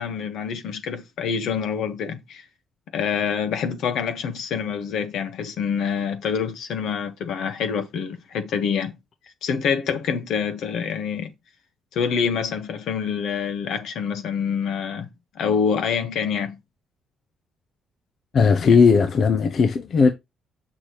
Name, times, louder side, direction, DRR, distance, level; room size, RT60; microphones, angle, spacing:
voice 1, 0.0-2.4 2.9-8.9 9.4-11.3 11.9-15.1 15.3-16.6 18.6-18.8, left 6 dB, 75° left, 1.3 m, -26 dB
voice 2, 18.3-20.1, left 5 dB, 55° left, 0.8 m, -17 dB
6.6 x 6.1 x 3.0 m
cardioid pair, 90°, 0 cm